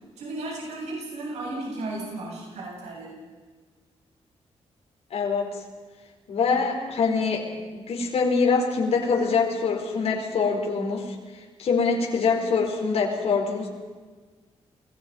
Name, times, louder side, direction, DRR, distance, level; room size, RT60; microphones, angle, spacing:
voice 1, 0.2-3.2, right 2 dB, 85° right, -2 dB, 7.4 m, -34 dB
voice 2, 5.1-5.6 6.3-7.4 7.7-11.1 11.6-13.7, left 5 dB, 70° left, 0 dB, 4.6 m, -24 dB
29.0 x 20.5 x 5.3 m, 1.4 s
wide cardioid pair, 145°, 11 cm